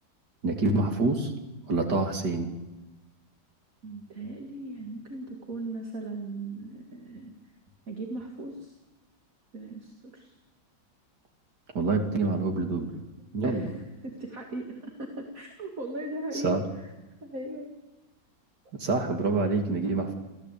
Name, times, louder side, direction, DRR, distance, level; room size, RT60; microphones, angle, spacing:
voice 1, 0.4-1.3 1.7-2.5 11.8-12.9 13.3-13.7 16.3-16.6 18.7-20.1, right 3 dB, 70° right, 4 dB, 3.4 m, -26 dB
voice 2, 3.8-7.3 7.9-8.7 9.5-10.3 13.4-13.7 14.0-16.6 17.2-17.7, right 2 dB, 50° right, 2 dB, 2.7 m, -38 dB
28.0 x 15.5 x 8.5 m, 1.1 s
omnidirectional pair, 1.9 m